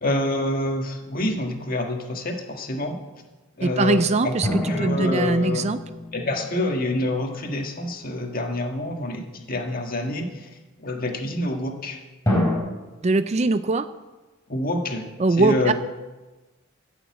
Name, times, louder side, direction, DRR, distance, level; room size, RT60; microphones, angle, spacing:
voice 1, 0.0-3.0 3.6-4.3 4.7-5.7 6.1-10.5 10.8-12.0 14.5-15.0 15.4-15.7, left 1 dB, 40° left, 3 dB, 1.7 m, -27 dB
voice 2, 3.6-5.8 13.0-13.9 15.2-15.7, right 3 dB, 30° right, 12 dB, 0.4 m, -21 dB
sound 1, 4.4-7.4 12.3-12.6, left 1 dB, 15° left, 4.3 m, -27 dB
14.0 x 7.0 x 8.4 m, 1.2 s
head